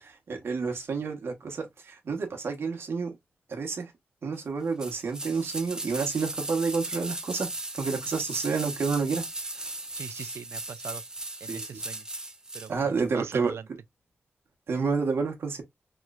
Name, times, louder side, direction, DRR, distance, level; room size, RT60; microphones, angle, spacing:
voice 1, 0.0-3.1 3.5-3.9 4.2-7.5 7.8-9.3 9.6-9.7 11.5-11.8 12.7-13.5 14.7-15.6, right 5 dB, 65° right, 1.0 m, -29 dB
sound 1, 4.8-12.7 13.0-13.1, right 2 dB, 15° right, 0.5 m, -37 dB
voice 2, 9.9-11.0 11.4-12.0 12.5-13.7, right 7 dB, 80° right, 0.3 m, -41 dB
3.1 x 3.0 x 2.3 m
wide cardioid pair, 170°, 4 cm